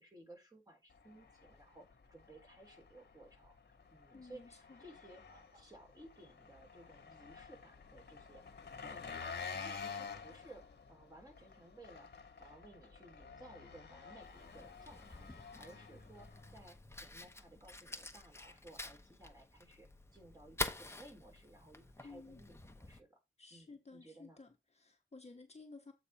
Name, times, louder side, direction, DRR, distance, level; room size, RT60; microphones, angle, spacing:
voice 1, 0.0-3.6 3.9-8.4 8.8-23.2 23.5-24.4, right 1 dB, 20° right, 3.6 m, -58 dB
Engine, 0.9-16.7, left 5 dB, 55° left, 1.2 m, -50 dB
sound 1, 3.9-6.1 6.7-7.4 7.8-10.5 11.1-12.2 12.5-14.9 15.5-16.2 16.8-18.6, right 1 dB, 40° right, 2.6 m, -72 dB
voice 2, 4.1-4.8 22.0-22.4 23.4-25.9, left 3 dB, 30° left, 1.1 m, -55 dB
Fire, 14.2-23.0, left 2 dB, 10° left, 0.8 m, -47 dB
8.2 x 4.9 x 4.3 m
wide cardioid pair, 150°, 21 cm